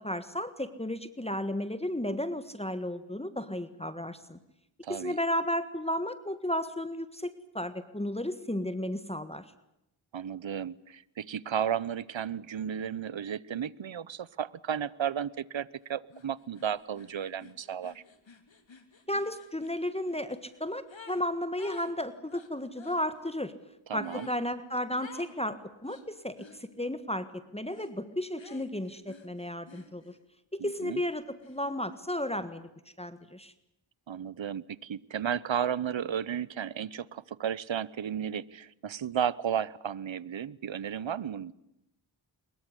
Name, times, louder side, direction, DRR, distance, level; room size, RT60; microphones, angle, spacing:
voice 1, 0.0-4.4 4.9-9.4 19.1-23.5 23.9-26.4 26.8-27.3 27.5-30.1 30.6-32.7 33.0-33.5, left 1 dB, 15° left, 12 dB, 1.6 m, -33 dB
voice 2, 4.8-5.2 10.1-18.0 23.9-24.3 30.6-31.0 34.1-41.5, right 8 dB, 70° right, 21 dB, 0.9 m, -33 dB
sound 1, 16.1-16.3 16.5-21.2 21.5-23.0 24.0-24.4 25.0-25.4 25.8-26.6 27.7-28.0 28.4-30.2 30.6-32.0, left 4 dB, 70° left, 3.2 m, -52 dB
23.5 x 21.5 x 9.9 m, 0.83 s
wide cardioid pair, 55°, 47 cm